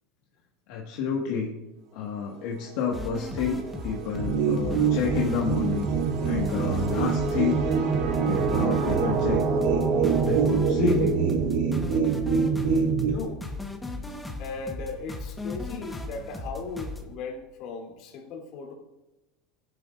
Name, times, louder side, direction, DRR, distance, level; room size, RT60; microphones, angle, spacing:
voice 1, 0.7-1.5 1.9-5.9 6.2-7.6 8.3-9.4 10.2-11.1, left 6 dB, 65° left, -2 dB, 1.8 m, -29 dB
sound 1, 2.5-13.0, right 5 dB, 55° right, 1.4 m, -30 dB
sound 2, 2.9-17.0, left 2 dB, 10° left, 1.3 m, -37 dB
sound 3, 4.1-13.1, right 5 dB, 80° right, 2.1 m, -26 dB
voice 2, 13.1-13.4 14.4-18.7, left 4 dB, 50° left, 1 dB, 3.2 m, -37 dB
15.5 x 10.5 x 2.6 m, 0.97 s
supercardioid pair, 135°, 0 cm